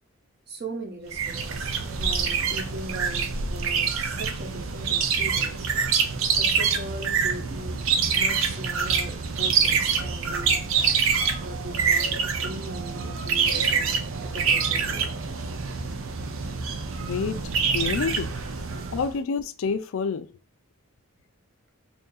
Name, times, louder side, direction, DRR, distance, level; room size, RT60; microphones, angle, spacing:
voice 1, 0.5-1.7 2.0-5.7 6.4-7.8 8.1-10.7 11.4-15.1 17.1-17.4 17.7-18.1 18.3-19.0, right 1 dB, 50° right, 0.9 m, -40 dB
sound 1, 1.1-19.1, right 6 dB, 80° right, 0.5 m, -26 dB
voice 2, 17.0-17.4 17.7-18.3 18.9-20.3, left 5 dB, 80° left, 0.4 m, -28 dB
2.7 x 2.6 x 3.7 m
head